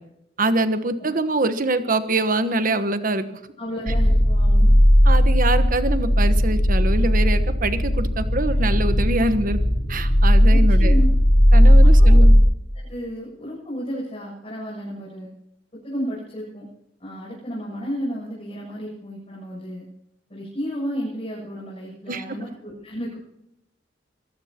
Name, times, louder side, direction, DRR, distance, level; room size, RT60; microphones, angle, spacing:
voice 1, 0.4-3.2 5.0-9.6 9.9-11.0 11.5-12.4 22.1-22.2, right 2 dB, 50° right, 11 dB, 1.2 m, -24 dB
voice 2, 3.6-4.7 10.5-11.1 12.0-12.2 12.8-15.3 15.7-16.7 17.0-19.8 20.3-23.2, equal, 35° left, -6 dB, 7.8 m, -32 dB
sound 1, 3.9-12.4, equal, 50° left, 3.8 m, -16 dB
24.0 x 19.5 x 3.0 m, 0.84 s
head